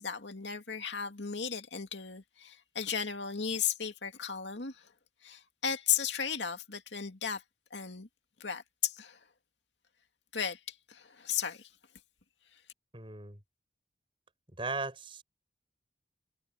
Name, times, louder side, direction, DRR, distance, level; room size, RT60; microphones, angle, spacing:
voice 1, 0.0-4.9 5.2-7.4 7.7-8.1 8.4-9.2 10.3-11.7, left 8 dB, 90° left, 2.4 m, -35 dB
voice 2, 12.9-13.4 14.6-15.2, right 3 dB, 30° right, 6.7 m, -37 dB
head